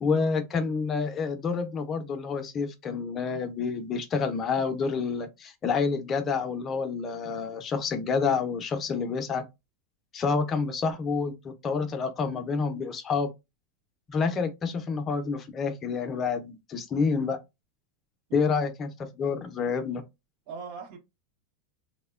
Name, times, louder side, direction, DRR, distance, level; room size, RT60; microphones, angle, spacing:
voice 1, 0.0-9.4 10.1-13.3 14.1-17.4 18.3-20.0, left 5 dB, 25° left, 0.5 m, -28 dB
voice 2, 20.5-21.0, right 5 dB, 55° right, 0.8 m, -39 dB
2.9 x 2.1 x 2.3 m
supercardioid pair, 135°, 0 cm